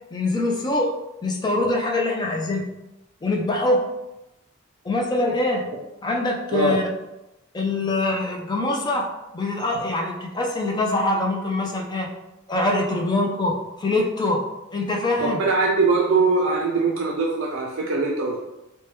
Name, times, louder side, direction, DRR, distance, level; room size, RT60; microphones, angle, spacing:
voice 1, 0.1-1.0 1.2-2.7 3.2-3.9 4.8-5.7 6.0-6.9 7.5-12.1 12.5-14.4 14.7-15.4, left 2 dB, 20° left, 1 dB, 0.4 m, -24 dB
voice 2, 15.2-18.4, right 3 dB, 70° right, -1 dB, 0.4 m, -22 dB
2.8 x 2.2 x 3.3 m, 0.94 s
head